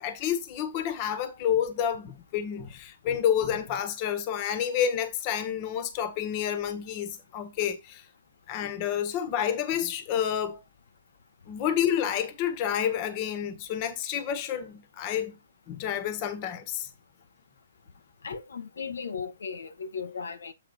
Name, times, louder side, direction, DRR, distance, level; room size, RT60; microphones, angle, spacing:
voice 1, 0.0-8.0 8.5-10.6 11.5-15.4 15.7-16.9, left 9 dB, 30° left, 1.4 m, -29 dB
voice 2, 18.2-20.5, left 5 dB, 85° left, 1.1 m, -36 dB
8.2 x 4.2 x 4.1 m
hypercardioid pair, 155°, 0 cm